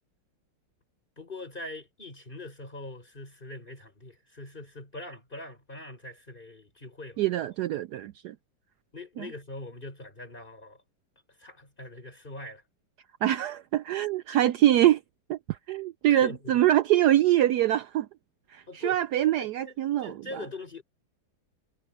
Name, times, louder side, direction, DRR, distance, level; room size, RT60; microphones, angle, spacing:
voice 1, 1.2-7.3 8.9-10.8 11.4-12.6 16.1-16.6 18.7-19.0 19.4-20.8, left 2 dB, 25° left, 4.7 m, -42 dB
voice 2, 7.2-8.4 9.2-9.3 13.2-15.0 15.3-18.1 18.5-20.4, right 13 dB, 80° right, 0.9 m, -24 dB
omnidirectional pair, 2.3 m